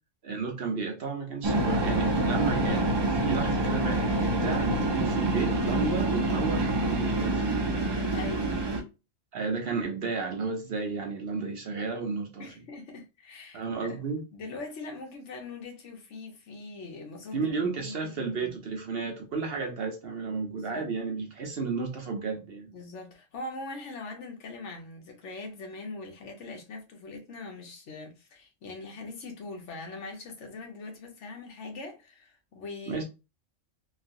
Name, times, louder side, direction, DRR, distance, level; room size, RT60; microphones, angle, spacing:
voice 1, 0.2-7.6 9.3-12.5 13.5-14.2 17.3-22.7 32.9-33.0, right 4 dB, 55° right, 0.8 m, -32 dB
sound 1, 1.4-8.8, right 2 dB, 30° right, 0.5 m, -26 dB
voice 2, 8.1-8.7 12.4-14.0 14.3-18.6 20.5-20.9 22.7-33.0, left 3 dB, 70° left, 1.2 m, -42 dB
3.2 x 2.4 x 2.6 m
omnidirectional pair, 1.3 m